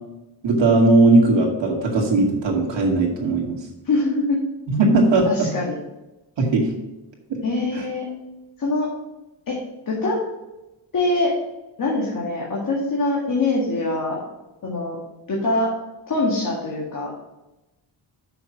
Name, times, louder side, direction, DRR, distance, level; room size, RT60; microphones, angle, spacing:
voice 1, 0.4-3.6 4.7-5.5 6.4-6.7 7.3-7.4 7.7-7.8, right 2 dB, 70° right, -1 dB, 2.3 m, -18 dB
voice 2, 3.8-4.4 5.2-5.8 7.4-8.1 8.6-8.9 9.5-9.6 9.9-10.2 10.9-11.3 11.8-14.2 14.6-15.0 15.3-15.7 16.1-17.1, left 2 dB, 45° left, -4 dB, 1.9 m, -23 dB
6.4 x 6.1 x 6.0 m, 1.0 s
wide cardioid pair, 175°, 45 cm